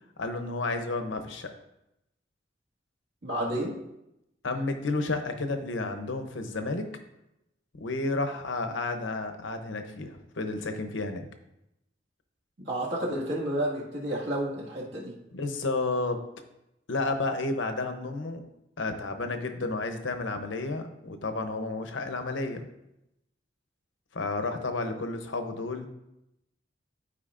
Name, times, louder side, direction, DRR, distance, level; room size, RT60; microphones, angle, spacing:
voice 1, 0.2-1.5 4.4-6.9 7.8-11.3 15.3-16.2 16.9-18.4 18.8-22.6 24.1-25.9, left 3 dB, 80° left, 7 dB, 0.8 m, -31 dB
voice 2, 3.2-3.8 12.6-15.1, right 1 dB, 70° right, -4 dB, 1.9 m, -31 dB
12.0 x 4.9 x 2.5 m, 0.88 s
head